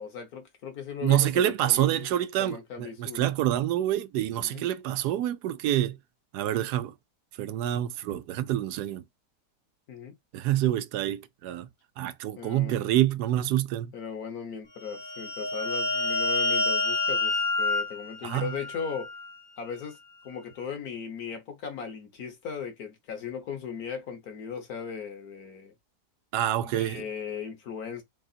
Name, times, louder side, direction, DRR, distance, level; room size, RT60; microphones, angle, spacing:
voice 1, 0.0-3.3 4.4-4.7 9.9-10.2 12.4-13.0 13.9-19.1 19.6-20.0 20.2-25.7 26.6-28.0, left 6 dB, 65° left, 1.7 m, -38 dB
voice 2, 1.0-6.0 6.3-6.9 7.4-9.0 10.3-11.7 12.0-13.9 18.2-18.5 26.3-27.0, right 12 dB, 80° right, 1.2 m, -27 dB
sound 1, 14.8-19.3, left 2 dB, 5° left, 1.3 m, -28 dB
4.2 x 3.9 x 2.4 m
omnidirectional pair, 1.7 m